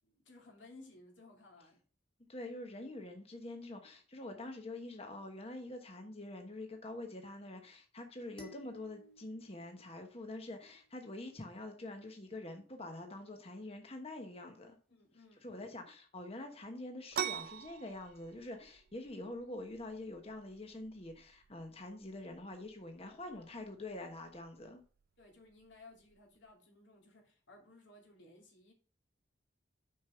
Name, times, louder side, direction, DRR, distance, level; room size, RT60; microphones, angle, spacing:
voice 1, 0.0-1.8 14.9-15.7 23.0-23.4 25.2-28.7, left 2 dB, 70° left, 2.8 m, -59 dB
voice 2, 2.3-14.8 15.4-24.8, left 2 dB, 30° left, 1.2 m, -46 dB
sound 1, 8.4-10.8, left 1 dB, 5° left, 1.9 m, -58 dB
sound 2, 17.1-26.5, right 9 dB, 50° right, 0.3 m, -47 dB
6.6 x 5.3 x 5.7 m
head